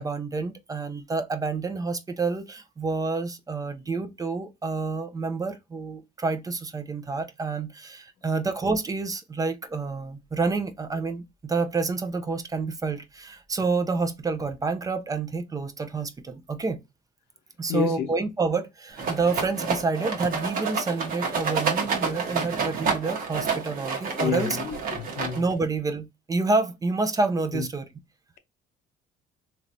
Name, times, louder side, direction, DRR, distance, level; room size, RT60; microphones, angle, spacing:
voice 1, 0.0-16.8 17.6-24.6 25.3-27.9, right 3 dB, 20° right, 0.5 m, -28 dB
voice 2, 17.7-18.1 24.2-25.4 27.5-27.7, left 7 dB, 75° left, 0.6 m, -29 dB
Rattle, 19.0-25.6, right 5 dB, 60° right, 1.1 m, -29 dB
3.2 x 2.9 x 2.5 m
cardioid pair, 110°, 17 cm